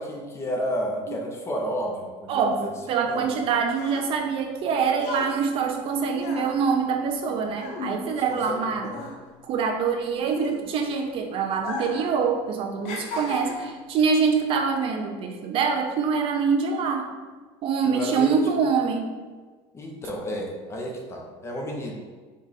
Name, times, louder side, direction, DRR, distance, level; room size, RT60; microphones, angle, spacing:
voice 1, 0.0-2.7 3.0-3.2 8.1-9.1 17.9-18.4 19.7-21.9, equal, 20° left, 0 dB, 0.8 m, -31 dB
voice 2, 2.3-8.9 9.4-17.1 17.6-19.1, right 5 dB, 45° right, 4 dB, 0.5 m, -25 dB
sound 1, 3.3-8.6 8.9-11.0 11.5-12.1 12.4-13.9 14.6-14.8, left 2 dB, 65° left, 0.9 m, -36 dB
5.3 x 2.4 x 4.0 m, 1.4 s
cardioid pair, 140°, 13 cm